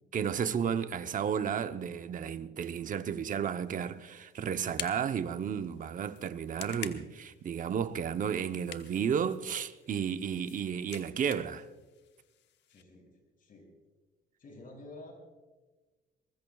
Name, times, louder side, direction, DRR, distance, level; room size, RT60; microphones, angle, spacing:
voice 1, 0.1-11.7, right 7 dB, 45° right, 0.8 m, -33 dB
sound 1, 3.6-12.8, left 10 dB, 70° left, 1.1 m, -49 dB
voice 2, 12.7-13.1 13.4-13.7 14.4-15.1, left 2 dB, 45° left, 6.7 m, -49 dB
23.5 x 20.5 x 2.4 m
cardioid pair, 110°, 19 cm